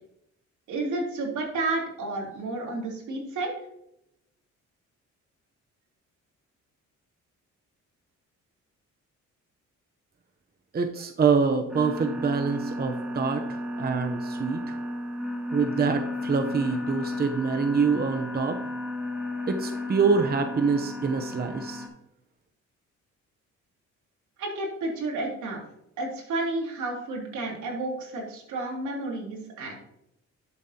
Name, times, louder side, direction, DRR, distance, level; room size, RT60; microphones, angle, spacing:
voice 1, 0.7-3.5 24.4-25.6 26.0-29.7, right 2 dB, 75° right, -1 dB, 3.4 m, -31 dB
voice 2, 10.7-14.8 15.5-18.6 19.5-21.8, right 5 dB, 30° right, 6 dB, 0.8 m, -25 dB
sound 1, 11.7-21.9, left 1 dB, 5° right, 2.4 m, -33 dB
11.5 x 7.5 x 2.9 m, 0.80 s
cardioid pair, 90°, 30 cm